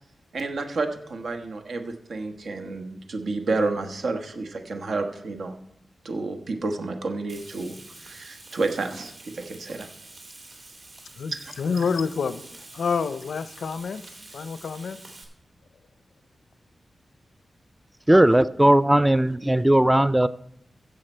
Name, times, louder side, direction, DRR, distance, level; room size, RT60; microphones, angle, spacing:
voice 1, 0.3-5.6 6.0-9.9 11.3-11.5, right 3 dB, 75° right, 6 dB, 1.2 m, -30 dB
Frying (food), 7.3-15.2, right 2 dB, 50° right, 2.5 m, -47 dB
voice 2, 11.2-12.4 12.7-14.0 14.3-15.0, left 5 dB, 85° left, 14 dB, 0.5 m, -28 dB
voice 3, 18.1-20.3, right 1 dB, 10° right, 15 dB, 0.3 m, -18 dB
15.0 x 6.6 x 4.4 m, 0.76 s
wide cardioid pair, 85°, 0 cm